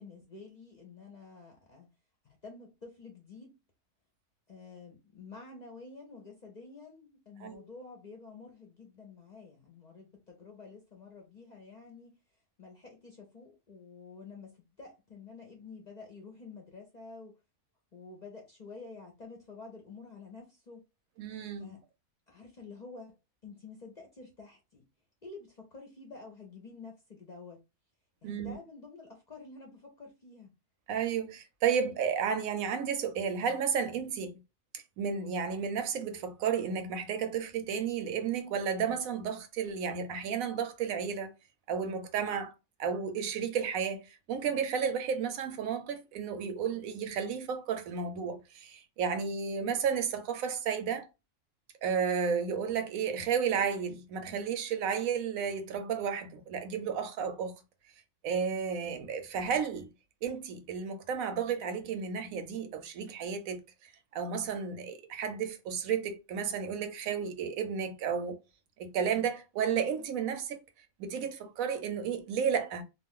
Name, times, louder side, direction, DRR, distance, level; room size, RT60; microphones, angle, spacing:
voice 1, 0.0-1.9 2.2-3.6 4.5-12.2 12.6-17.4 17.9-20.9 21.6-21.8 22.3-23.2 23.4-24.8 25.2-27.6 28.2-30.5, left 4 dB, 45° left, 0.6 m, -49 dB
voice 2, 21.2-21.7 28.2-28.6 30.9-34.4 35.0-41.3 41.7-42.5 42.8-51.1 51.8-57.5 58.2-59.9 60.2-63.6 64.1-68.4 68.8-70.6 71.0-72.8, right 7 dB, 80° right, 1.0 m, -32 dB
2.4 x 2.3 x 3.5 m
omnidirectional pair, 1.4 m